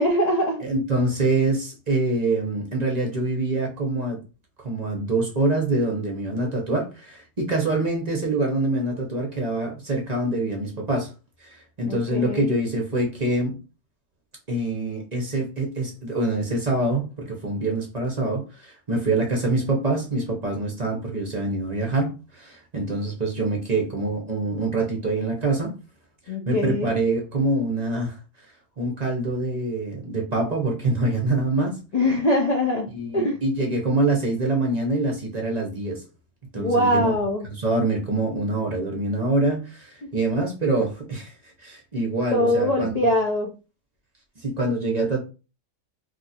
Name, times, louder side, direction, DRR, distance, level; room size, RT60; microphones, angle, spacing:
voice 1, 0.0-0.6 11.8-12.6 26.3-26.9 31.9-33.4 36.5-37.5 40.0-40.1 42.3-43.5, left 1 dB, 80° left, 0.3 m, -23 dB
voice 2, 0.6-4.2 4.6-11.1 11.4-13.6 14.5-25.7 26.5-28.2 28.8-31.8 32.9-36.0 36.5-37.1 37.6-41.3 41.6-43.0 44.4-45.2, right 2 dB, 35° right, 0.7 m, -25 dB
2.7 x 2.3 x 4.1 m
omnidirectional pair, 1.5 m